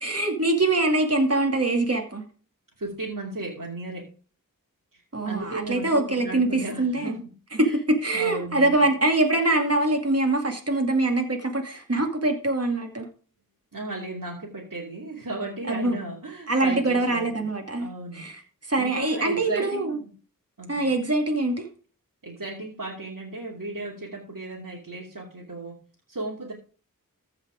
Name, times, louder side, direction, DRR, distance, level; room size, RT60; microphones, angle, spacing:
voice 1, 0.0-2.2 5.1-7.2 7.5-13.1 15.7-16.0 16.5-20.0 20.7-21.6, right 2 dB, 45° right, 2 dB, 2.4 m, -24 dB
voice 2, 2.8-4.1 4.9-7.2 7.6-7.8 8.1-8.8 13.7-17.5 17.8-18.4 18.8-20.1 20.6-21.0 22.2-25.8 26.1-26.5, right 2 dB, 65° right, -4 dB, 2.8 m, -35 dB
15.0 x 5.0 x 5.0 m, 0.39 s
wide cardioid pair, 45°, 34 cm